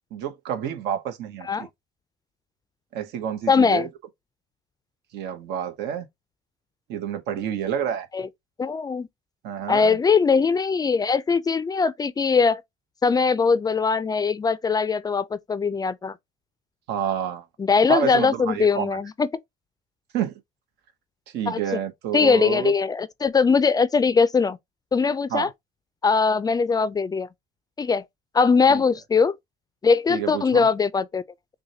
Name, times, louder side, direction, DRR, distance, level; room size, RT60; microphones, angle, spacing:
voice 1, 0.1-1.7 2.9-3.9 5.1-6.1 6.9-8.1 9.4-10.0 16.9-17.4 17.9-19.0 20.1-20.3 21.3-22.7 25.3-25.5 28.7-28.8 30.1-30.7, right 9 dB, 80° right, 0.9 m, -29 dB
voice 2, 3.5-3.9 8.1-8.3 8.6-9.1 9.7-12.6 13.0-16.2 17.6-19.3 21.5-21.8 22.1-24.6 24.9-25.5 26.0-27.3 27.8-28.0 28.3-29.3 29.8-31.2, left 5 dB, 20° left, 0.3 m, -21 dB
6.2 x 2.2 x 2.7 m
cardioid pair, 110°, 17 cm